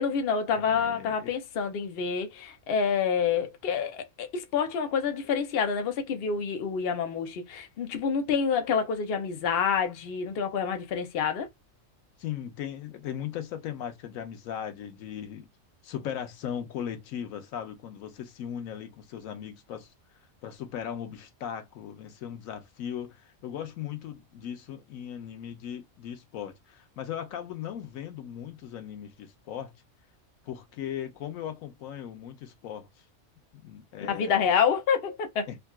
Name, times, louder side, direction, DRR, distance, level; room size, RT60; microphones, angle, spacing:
voice 1, 0.0-11.5 34.1-35.5, left 6 dB, 55° left, 0.8 m, -28 dB
voice 2, 0.5-1.3 12.2-15.5 15.8-19.9 20.4-29.7 30.4-32.9 33.5-34.5 35.5-35.6, left 9 dB, 85° left, 1.1 m, -38 dB
3.7 x 2.3 x 2.3 m
omnidirectional pair, 1.4 m